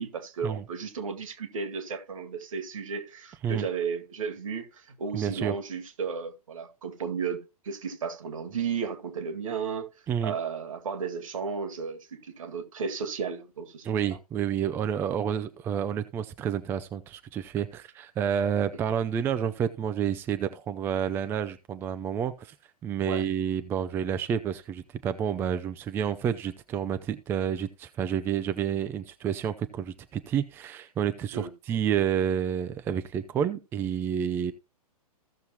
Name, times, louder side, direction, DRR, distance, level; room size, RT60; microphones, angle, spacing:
voice 1, 0.0-9.9 10.2-13.9 18.7-19.0 23.1-23.2 31.3-31.5, right 6 dB, 55° right, 2.0 m, -34 dB
voice 2, 5.1-5.5 10.1-10.3 13.8-22.5 22.8-34.5, right 8 dB, 10° right, 0.4 m, -29 dB
15.5 x 6.7 x 2.9 m
figure-of-eight pair, 115°, 20 cm